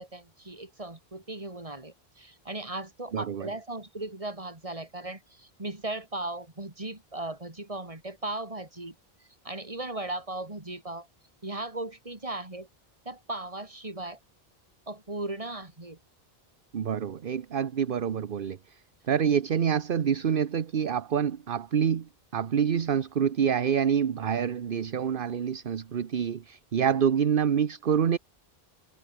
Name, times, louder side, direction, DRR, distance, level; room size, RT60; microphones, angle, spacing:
voice 1, 0.0-8.9 9.4-11.1 11.4-12.7 13.0-14.2 14.9-16.0, right 2 dB, 35° right, 2.9 m, -37 dB
voice 2, 3.1-3.5 16.7-18.8 19.1-28.2, right 8 dB, 60° right, 1.0 m, -27 dB
omnidirectional pair, 1.0 m